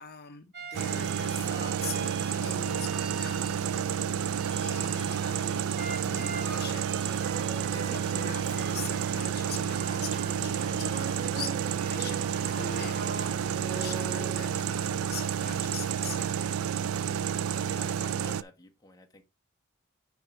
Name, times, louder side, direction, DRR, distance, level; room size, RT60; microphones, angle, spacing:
voice 1, 0.0-5.6 6.0-6.8 7.7-12.2 12.5-13.0 13.5-16.6, left 6 dB, 50° left, 0.9 m, -43 dB
sound 1, 0.5-4.0 4.3-14.9, right 4 dB, 55° right, 2.4 m, -41 dB
sound 2, 0.7-18.4, right 8 dB, 85° right, 0.4 m, -30 dB
voice 2, 17.6-19.2, left 3 dB, 20° left, 1.5 m, -51 dB
9.7 x 3.8 x 4.5 m
head